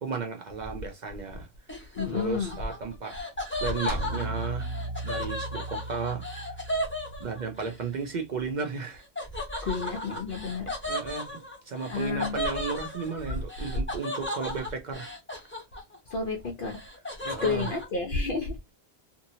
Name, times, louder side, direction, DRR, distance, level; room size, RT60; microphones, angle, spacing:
voice 1, 0.0-1.5 2.1-3.2 3.6-4.7 5.0-6.2 6.5-6.7 7.2-9.0 9.5-9.7 10.9-15.1 17.2-17.7, right 4 dB, 55° right, 0.5 m, -34 dB
Laughter, 1.7-7.7 9.2-16.1 16.4-17.9, left 1 dB, 10° left, 0.8 m, -35 dB
voice 2, 2.0-2.6 9.6-10.7 11.9-12.4 16.1-16.8 17.4-18.6, left 4 dB, 60° left, 0.7 m, -30 dB
sound 1, 3.9-8.3, right 2 dB, 80° right, 0.9 m, -37 dB
2.6 x 2.6 x 2.7 m
omnidirectional pair, 1.1 m